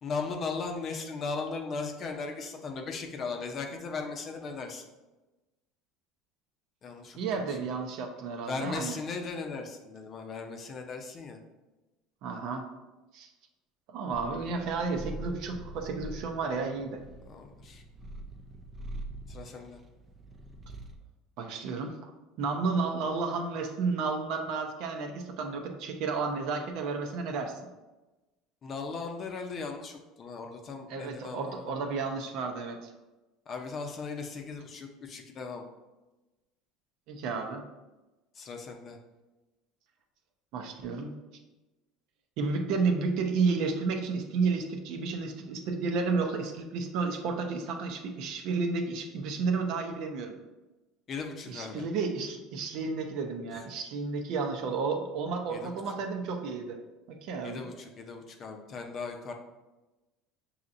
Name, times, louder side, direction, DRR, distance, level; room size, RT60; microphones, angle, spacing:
voice 1, 0.0-4.9 6.8-7.7 8.5-11.4 17.2-17.8 19.3-19.8 28.6-31.6 33.5-35.6 38.3-39.0 51.1-51.8 53.5-53.6 55.5-55.8 57.4-59.3, left 4 dB, 40° left, 3 dB, 0.6 m, -37 dB
voice 2, 7.2-9.0 12.2-12.6 13.1-13.3 13.9-17.0 21.4-22.1 22.4-27.6 30.9-32.9 37.1-37.6 40.5-41.1 42.4-50.3 51.5-56.8 57.1-57.7, right 4 dB, 65° right, 4 dB, 0.7 m, -32 dB
Purr, 14.1-21.1, right 2 dB, 25° right, 0.5 m, -44 dB
6.5 x 2.8 x 2.6 m, 1.1 s
supercardioid pair, 115°, 0 cm